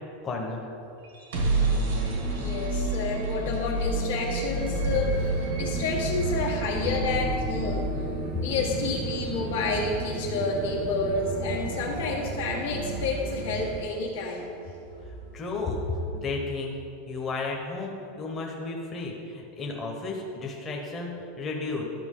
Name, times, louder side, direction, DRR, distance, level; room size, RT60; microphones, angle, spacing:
voice 1, 0.2-0.6 15.3-16.8 17.1-21.8, left 3 dB, 20° left, -1 dB, 0.9 m, -33 dB
sound 1, 1.0-14.9, right 2 dB, 90° right, 1.7 m, -31 dB
voice 2, 2.3-14.5, left 3 dB, 85° left, -1 dB, 1.6 m, -30 dB
sound 2, 4.5-13.9, right 5 dB, 45° right, 0.5 m, -36 dB
11.5 x 5.8 x 3.7 m, 2.7 s
supercardioid pair, 165°, 0 cm